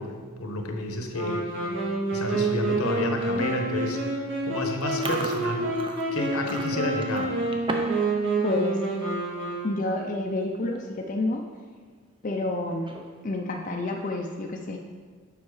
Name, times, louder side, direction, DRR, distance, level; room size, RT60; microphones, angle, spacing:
voice 1, 0.0-1.7 2.1-5.8 6.1-7.4, left 1 dB, 75° left, 3 dB, 1.0 m, -31 dB
Wind instrument woodwind instrument, 1.1-10.1, right 2 dB, 55° right, 1.9 m, -28 dB
Chewing mastication, 4.8-8.1 8.4-8.7 9.1-9.3 10.1-10.2 10.4-10.8 11.2-11.3 12.7-13.3, right 2 dB, 25° right, 0.5 m, -36 dB
voice 2, 8.4-8.9 9.6-11.4 12.2-12.9 13.2-14.8, left 2 dB, 35° left, 1 dB, 0.5 m, -29 dB
7.1 x 5.6 x 4.8 m, 1.5 s
head